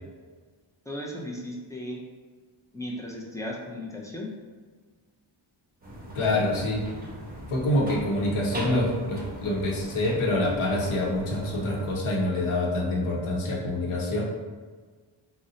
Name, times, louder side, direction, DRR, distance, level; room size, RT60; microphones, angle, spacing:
voice 1, 0.9-2.0 2.7-4.3, left 1 dB, 10° left, -3 dB, 0.3 m, -36 dB
sound 1, 5.8-11.9, right 1 dB, 20° right, 0.8 m, -39 dB
voice 2, 6.1-6.9 7.5-14.2, left 1 dB, 85° left, -2 dB, 0.8 m, -26 dB
2.6 x 2.1 x 3.7 m, 1.5 s
wide cardioid pair, 120°, 48 cm